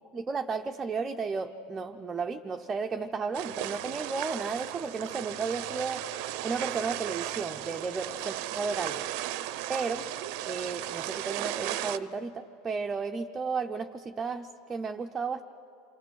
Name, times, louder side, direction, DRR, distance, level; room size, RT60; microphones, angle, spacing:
voice 1, 0.1-6.0 6.4-9.0 9.7-10.1 10.4-15.4, right 4 dB, 20° right, 4 dB, 0.7 m, -33 dB
sound 1, 3.3-12.0, right 13 dB, 60° right, 0.7 m, -35 dB
28.5 x 25.5 x 6.4 m, 2.7 s
supercardioid pair, 140°, 0 cm